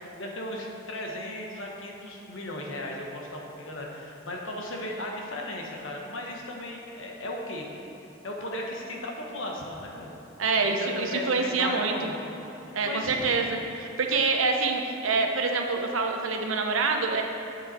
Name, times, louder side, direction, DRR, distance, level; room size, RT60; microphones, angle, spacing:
voice 1, 0.2-7.7 8.2-10.1 10.6-12.4 12.6-13.3, left 1 dB, 70° left, -1 dB, 1.3 m, -36 dB
voice 2, 10.4-11.9 12.7-17.2, right 4 dB, 85° right, 3 dB, 0.8 m, -26 dB
8.7 x 7.4 x 4.3 m, 2.9 s
head